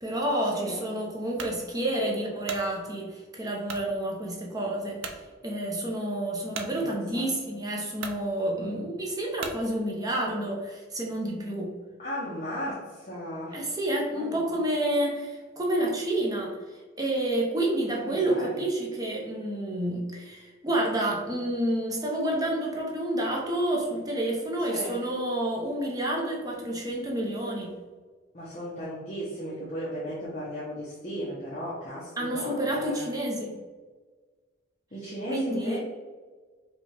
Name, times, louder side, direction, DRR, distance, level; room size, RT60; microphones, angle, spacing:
voice 1, 0.0-11.8 13.5-16.6 17.0-27.8 32.2-33.6 35.3-35.8, right 1 dB, 20° right, -2 dB, 0.6 m, -29 dB
voice 2, 0.5-0.8 6.5-7.3 12.0-13.6 14.1-14.4 18.0-18.6 24.7-25.0 28.3-33.1 34.9-35.8, equal, 35° left, -8 dB, 0.8 m, -36 dB
sound 1, 1.4-1.6 2.2-2.7 3.7-3.9 4.4-4.5 5.0-5.2 6.5-6.7 7.5-7.6 8.0-8.2 9.4-9.6, right 5 dB, 75° right, 0.5 m, -37 dB
5.0 x 2.3 x 3.3 m, 1.4 s
head